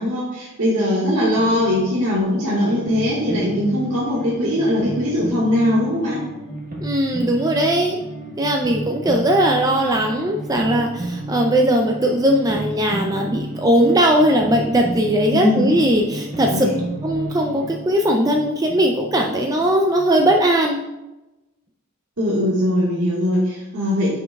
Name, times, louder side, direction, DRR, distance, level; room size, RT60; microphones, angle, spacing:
voice 1, 0.0-6.2 15.3-15.7 16.5-16.7 22.2-24.2, left 1 dB, 70° right, -7 dB, 1.6 m, -20 dB
sound 1, 1.3-20.4, right 1 dB, 40° right, 1.3 m, -32 dB
voice 2, 6.8-8.0 8.4-16.7 17.0-20.8, right 1 dB, 15° right, 1 dB, 0.4 m, -19 dB
9.3 x 5.3 x 2.3 m, 1.0 s
head